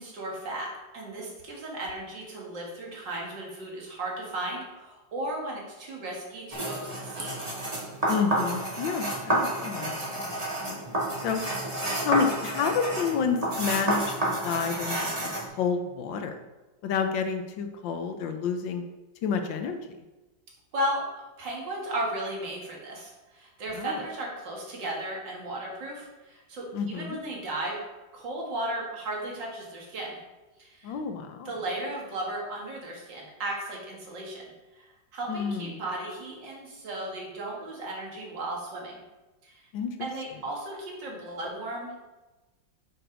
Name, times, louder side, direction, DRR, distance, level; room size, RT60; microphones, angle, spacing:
voice 1, 0.0-7.4 20.7-21.0 21.4-27.8 28.1-30.2 30.6-31.0 31.4-34.4 34.7-34.9 35.1-39.0 39.4-39.7 40.0-42.0, right 1 dB, 70° right, -2 dB, 2.5 m, -35 dB
sound 1, 6.5-15.5, right 1 dB, 20° right, 1.8 m, -30 dB
voice 2, 8.1-10.3 10.6-10.8 11.2-11.4 12.0-15.3 15.6-16.4 16.8-18.8 19.2-19.8 23.7-24.0 26.7-27.2 30.8-31.5 35.3-35.8 39.7-40.1, left 6 dB, 75° left, 6 dB, 1.5 m, -29 dB
6.7 x 6.0 x 5.2 m, 1.1 s
omnidirectional pair, 2.1 m